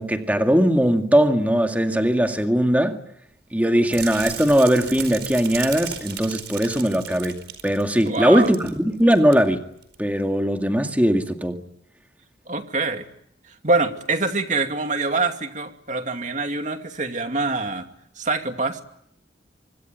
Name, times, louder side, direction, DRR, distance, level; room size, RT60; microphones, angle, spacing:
voice 1, 0.0-3.0 3.5-9.6 10.0-11.6, equal, 10° right, 2.2 m, -20 dB
sound 1, 3.9-8.7 9.0-9.3 9.8-9.9, right 8 dB, 65° right, 4.8 m, -35 dB
voice 2, 8.1-8.5 12.5-13.0 13.6-17.9 18.2-18.8, right 3 dB, 40° right, 2.5 m, -25 dB
25.5 x 22.5 x 9.3 m
head